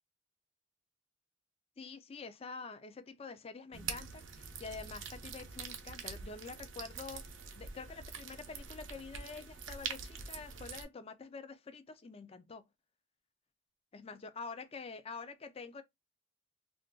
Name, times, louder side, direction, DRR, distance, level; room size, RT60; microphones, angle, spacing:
voice 1, 1.8-12.6 13.9-15.8, left 4 dB, 30° left, 0.4 m, -47 dB
sound 1, 3.7-10.8, right 6 dB, 70° right, 0.6 m, -45 dB
2.5 x 2.3 x 3.6 m
head